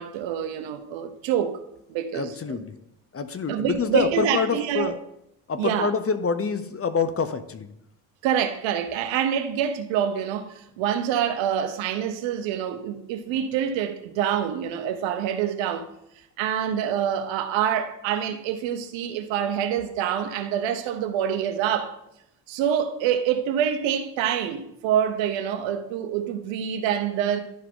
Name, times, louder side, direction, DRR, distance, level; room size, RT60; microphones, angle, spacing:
voice 1, 0.0-1.6 1.9-2.6 3.5-4.9 5.6-5.9 8.2-15.9 16.4-22.0 22.5-27.4, right 9 dB, 75° right, 1.0 m, -26 dB
voice 2, 2.1-2.8 3.1-5.0 5.5-7.7, left 5 dB, 30° left, 0.8 m, -26 dB
11.5 x 4.5 x 3.8 m
hypercardioid pair, 55°, 46 cm